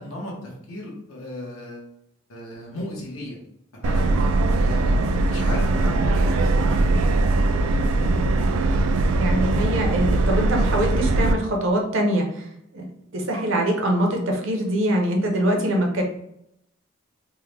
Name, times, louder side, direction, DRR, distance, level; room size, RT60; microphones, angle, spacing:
voice 1, 0.0-1.9 2.3-3.4 3.7-7.3 7.7-8.2, left 1 dB, 85° left, -2 dB, 1.1 m, -36 dB
Subway metro underground, 3.8-11.3, right 2 dB, 80° right, 0.3 m, -20 dB
voice 2, 9.1-12.5 12.7-12.8 13.1-16.0, right 1 dB, 65° right, 1 dB, 0.7 m, -23 dB
3.5 x 2.1 x 3.3 m, 0.76 s
head